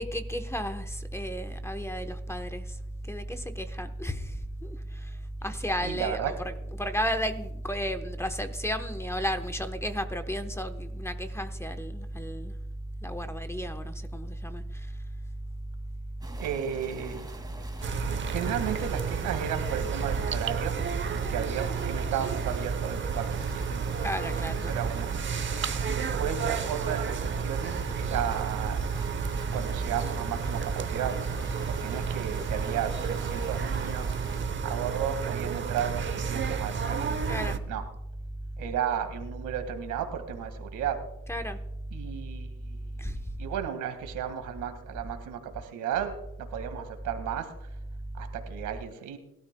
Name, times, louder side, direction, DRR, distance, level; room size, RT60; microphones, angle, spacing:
voice 1, 0.0-2.6 3.1-4.3 4.6-4.8 5.4-12.5 13.0-14.9 24.0-24.8 37.3-37.6 41.3-41.6 43.0-43.2, equal, 10° left, 8 dB, 1.0 m, -33 dB
voice 2, 5.8-6.3 16.4-17.3 18.2-20.8 21.1-23.8 24.7-25.1 25.8-28.8 29.5-31.2 31.7-34.2 34.6-37.2 37.7-37.8 38.6-41.0 41.9-42.9 43.4-46.2 46.5-47.7 48.1-49.2, right 9 dB, 90° right, 7 dB, 1.9 m, -34 dB
sound 1, 16.2-34.5, right 2 dB, 15° right, 2.3 m, -45 dB
sound 2, 17.8-37.6, right 6 dB, 40° right, 0.9 m, -31 dB
21.5 x 12.5 x 2.3 m, 0.88 s
cardioid pair, 90°, 30 cm